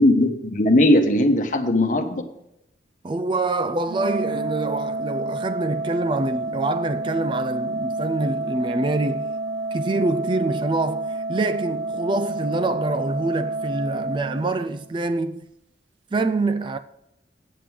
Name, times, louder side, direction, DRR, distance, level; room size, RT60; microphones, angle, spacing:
voice 1, 0.0-2.2, left 1 dB, 45° left, 1.1 m, -18 dB
voice 2, 3.0-9.3 9.7-15.5 16.1-16.8, right 2 dB, 25° right, 0.3 m, -25 dB
Organ, 3.9-14.9, right 2 dB, 90° right, 0.8 m, -29 dB
8.3 x 7.6 x 6.1 m
head